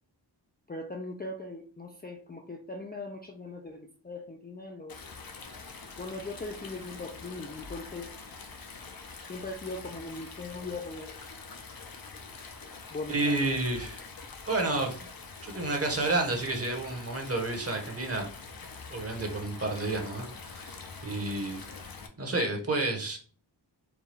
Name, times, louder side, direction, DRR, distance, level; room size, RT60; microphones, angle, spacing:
voice 1, 0.7-5.0 6.0-8.1 9.3-11.1 12.9-13.5, left 2 dB, 25° left, 2 dB, 0.4 m, -40 dB
Stream, 4.9-22.1, left 4 dB, 50° left, 0.7 m, -45 dB
voice 2, 13.1-14.0 14.5-15.0 15.4-18.3 18.9-21.6 22.2-23.2, right 2 dB, 30° right, 2 dB, 1.0 m, -30 dB
4.6 x 2.3 x 3.3 m, 0.42 s
wide cardioid pair, 95°, 45 cm